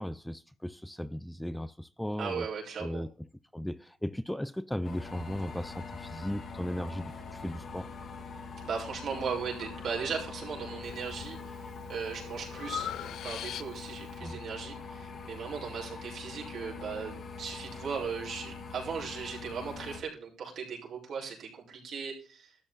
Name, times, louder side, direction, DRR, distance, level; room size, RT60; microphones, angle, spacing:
voice 1, 0.0-2.5 2.8-3.3 3.5-7.9 14.2-14.4, equal, 5° left, 0.5 m, -36 dB
voice 2, 2.2-3.0 8.6-22.6, right 6 dB, 65° right, 4.9 m, -38 dB
sound 1, 4.8-20.0, left 4 dB, 55° left, 2.4 m, -43 dB
Breathing, 10.8-11.3 11.8-14.0, left 10 dB, 75° left, 0.5 m, -40 dB
13.0 x 8.3 x 4.0 m
cardioid pair, 90°, 0 cm